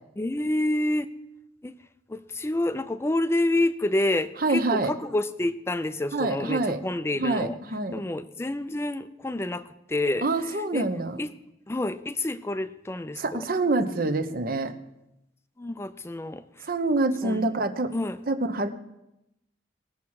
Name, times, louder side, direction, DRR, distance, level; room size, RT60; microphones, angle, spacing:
voice 1, 0.2-1.1 1.6-1.7 2.1-7.6 7.9-9.6 9.9-10.3 10.7-10.9 11.2-11.3 11.7-13.5 15.6-16.7 17.2-17.5 17.9-18.2, left 1 dB, 15° left, 12 dB, 0.4 m, -28 dB
voice 2, 4.4-4.9 6.1-6.8 7.2-8.0 10.2-11.2 13.2-14.7 16.7-17.9 18.3-18.7, right 2 dB, 50° right, 8 dB, 0.8 m, -26 dB
19.5 x 7.2 x 4.7 m, 0.89 s
head